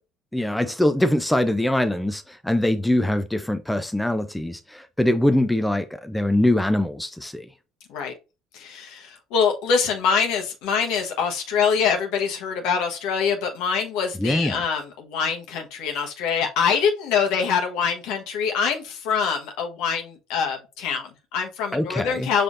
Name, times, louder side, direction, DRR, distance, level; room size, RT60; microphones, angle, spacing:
voice 1, 0.3-7.5 14.2-14.7 21.7-22.3, left 1 dB, 5° left, 0.5 m, -23 dB
voice 2, 8.5-22.4, left 6 dB, 70° left, 1.1 m, -24 dB
5.4 x 3.3 x 2.5 m
hypercardioid pair, 70°, 0 cm